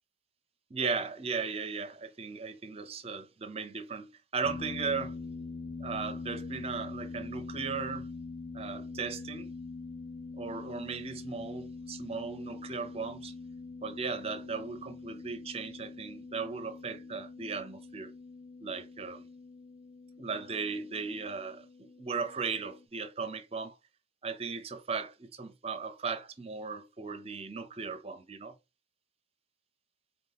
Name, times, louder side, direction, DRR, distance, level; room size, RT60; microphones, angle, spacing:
voice 1, 0.7-5.1 5.8-8.1 8.5-9.5 10.3-13.3 13.8-18.1 18.6-19.2 20.2-23.8 24.2-28.5, right 5 dB, 30° right, 0.5 m, -37 dB
sound 1, 4.4-22.9, left 3 dB, 35° left, 0.4 m, -44 dB
4.0 x 2.8 x 3.4 m
head